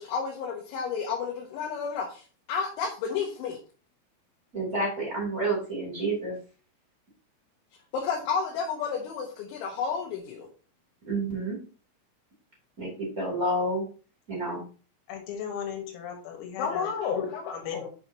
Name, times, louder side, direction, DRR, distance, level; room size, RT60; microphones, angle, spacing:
voice 1, 0.0-2.2 2.5-3.6 7.9-10.5 16.6-17.9, left 6 dB, 75° left, 0 dB, 3.3 m, -31 dB
voice 2, 4.5-6.4 11.1-11.6 12.8-12.9 13.2-13.8 14.3-14.6, right 2 dB, 25° right, -2 dB, 2.4 m, -29 dB
voice 3, 15.1-16.9 17.1-17.3 17.5-17.9, left 8 dB, 90° left, 2 dB, 4.1 m, -36 dB
7.5 x 6.8 x 2.8 m, 0.36 s
omnidirectional pair, 5.9 m